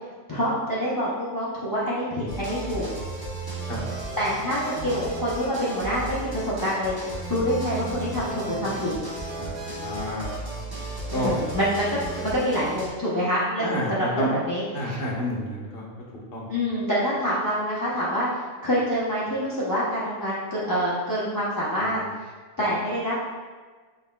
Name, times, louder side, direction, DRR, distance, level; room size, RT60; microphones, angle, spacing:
voice 1, 0.3-2.9 4.2-8.9 11.1-15.0 16.5-18.3 18.6-22.0 22.6-23.2, equal, 20° left, -9 dB, 0.5 m, -26 dB
sound 1, 2.3-12.9, right 2 dB, 20° right, 0.7 m, -34 dB
voice 2, 9.4-10.3 11.1-11.4 13.6-14.3 14.7-15.8 16.3-16.5, left 1 dB, 50° left, -4 dB, 1.0 m, -29 dB
5.4 x 3.3 x 2.2 m, 1.4 s
omnidirectional pair, 1.4 m